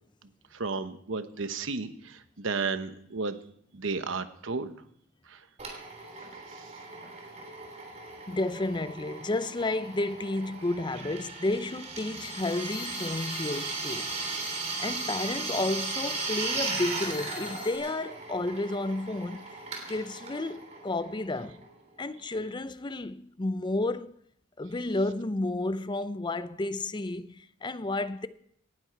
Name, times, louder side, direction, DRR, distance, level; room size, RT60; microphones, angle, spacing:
voice 1, 0.5-3.4 3.7-4.7 5.3-5.4 6.5-6.7, right 4 dB, 65° right, 1.0 m, -33 dB
Drill, 5.6-21.9, right 4 dB, 35° right, 3.5 m, -37 dB
voice 2, 8.3-14.1 14.8-19.6 19.9-21.6 22.0-24.2 24.6-28.3, left 2 dB, 20° left, 0.5 m, -31 dB
sound 1, 12.0-17.8, left 5 dB, 40° left, 2.1 m, -43 dB
18.0 x 11.5 x 4.6 m
head